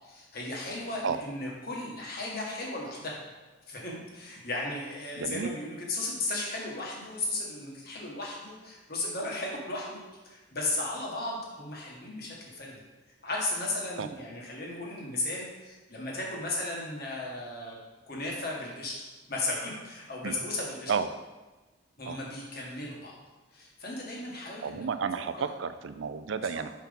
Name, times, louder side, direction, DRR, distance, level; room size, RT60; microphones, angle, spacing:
voice 1, 0.0-3.2 3.7-12.8 13.2-17.8 18.0-20.9 22.0-23.1 23.5-24.8 25.1-25.5, left 2 dB, 45° left, -3 dB, 1.6 m, -35 dB
voice 2, 5.2-5.5 14.0-14.1 20.2-20.4 20.9-21.1 22.1-22.2 24.6-26.7, right 6 dB, 65° right, 11 dB, 0.4 m, -32 dB
5.9 x 4.5 x 5.3 m, 1.2 s
head